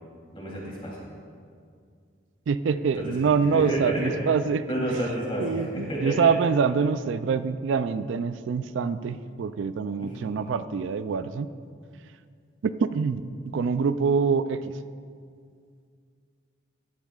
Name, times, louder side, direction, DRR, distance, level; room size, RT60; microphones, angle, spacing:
voice 1, 0.3-1.0 2.9-3.0 3.5-4.3 4.7-6.3 10.0-10.3, right 1 dB, 25° left, -5 dB, 3.0 m, -30 dB
voice 2, 2.5-4.7 5.4-11.5 12.6-13.3 13.5-14.7, right 5 dB, 75° right, 12 dB, 0.3 m, -25 dB
14.5 x 12.0 x 2.4 m, 2.2 s
head